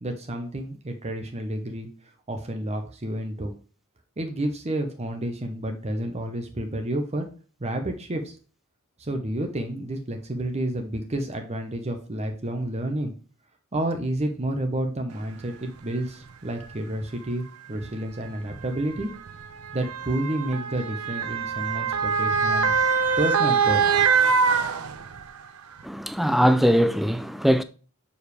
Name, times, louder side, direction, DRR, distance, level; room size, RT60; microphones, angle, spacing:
voice 1, 0.0-1.9 2.3-3.5 4.2-7.3 7.6-8.4 9.0-13.1 13.7-19.1 19.7-22.8 23.2-23.8, right 1 dB, 30° right, 0.8 m, -30 dB
Motor vehicle (road) / Siren, 15.4-15.5 16.5-16.7 17.8-25.4 25.8-25.9, right 5 dB, 85° right, 0.7 m, -24 dB
voice 2, 25.8-27.6, equal, ahead, 0.3 m, -21 dB
6.5 x 4.8 x 3.4 m
head